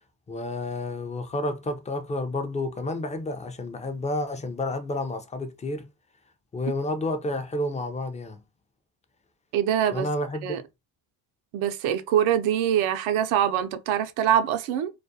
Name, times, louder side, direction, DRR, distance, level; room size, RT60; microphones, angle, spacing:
voice 1, 0.3-5.9 6.5-8.4 9.9-10.6, left 2 dB, 15° left, 0.4 m, -30 dB
voice 2, 9.5-10.1 10.4-10.6 11.5-14.9, right 10 dB, 70° right, 0.6 m, -24 dB
2.4 x 2.1 x 2.6 m
supercardioid pair, 70°, 50 cm